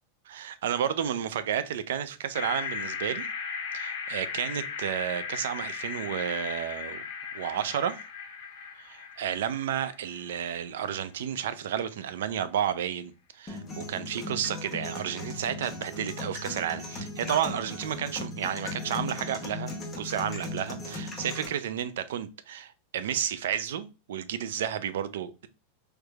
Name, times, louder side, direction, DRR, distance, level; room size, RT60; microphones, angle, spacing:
voice 1, 0.3-3.3 3.7-7.0 7.3-8.0 8.8-25.5, right 9 dB, 80° right, 0.4 m, -32 dB
sound 1, 2.3-10.6, left 6 dB, 70° left, 1.0 m, -37 dB
sound 2, 13.5-21.5, left 2 dB, 15° left, 0.8 m, -37 dB
3.3 x 3.1 x 2.3 m
supercardioid pair, 150°, 0 cm